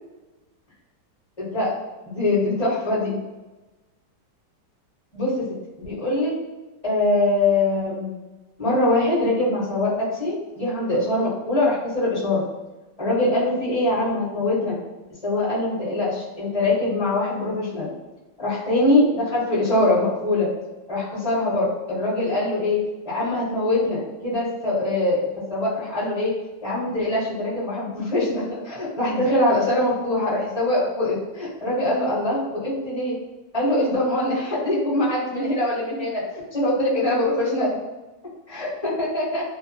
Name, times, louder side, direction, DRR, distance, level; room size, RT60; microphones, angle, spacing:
voice 1, 1.4-1.7 2.1-3.2 5.1-5.5 5.8-6.3 6.8-8.1 8.6-12.4 13.0-14.7 15.2-17.9 18.4-20.5 20.9-22.8 23.0-25.2 25.5-26.3 26.6-33.1 33.5-36.2 36.5-37.8 38.5-39.4, left 2 dB, 25° left, -14 dB, 0.9 m, -23 dB
2.9 x 2.2 x 2.6 m, 1.1 s
omnidirectional pair, 2.0 m